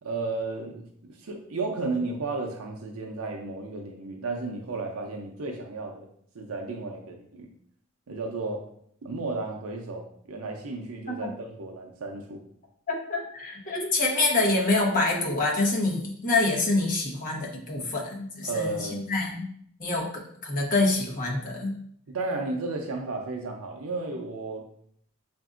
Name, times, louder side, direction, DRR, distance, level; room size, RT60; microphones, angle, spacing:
voice 1, 0.0-6.1 6.3-7.5 8.1-8.6 9.0-12.4 18.4-19.1 22.1-24.6, right 3 dB, 80° right, 2 dB, 0.6 m, -33 dB
voice 2, 12.9-19.5 19.8-21.7, left 2 dB, 40° left, -2 dB, 1.0 m, -26 dB
6.6 x 2.6 x 2.4 m, 0.66 s
head